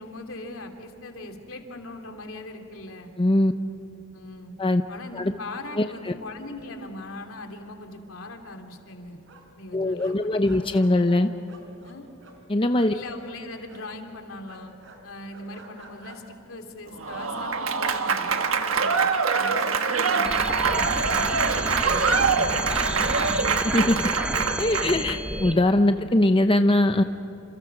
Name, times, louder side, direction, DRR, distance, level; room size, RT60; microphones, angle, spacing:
voice 1, 0.0-3.1 4.1-4.6 4.9-9.2 9.6-10.7 11.8-12.0 12.9-14.7 15.0-19.0 19.3-21.5 21.8-23.5 25.8-25.9, left 2 dB, 85° left, 4 dB, 3.0 m, -40 dB
voice 2, 3.2-3.5 4.6-4.8 5.1-5.3 5.8-6.1 9.7-11.3 12.5-12.9 23.7-24.1 24.6-27.0, left 1 dB, 25° left, 7 dB, 0.8 m, -21 dB
sound 1, 6.4-7.0 7.3-7.4 7.7-9.6 10.0-13.2 13.7-13.9 14.5-16.4 17.0-17.3, right 1 dB, 65° right, 4.4 m, -50 dB
Applause / Crowd, 17.0-25.1, right 5 dB, 85° right, 1.4 m, -24 dB
sound 2, 20.2-25.5, right 1 dB, 5° right, 1.4 m, -30 dB
28.5 x 28.0 x 6.0 m, 3.0 s
head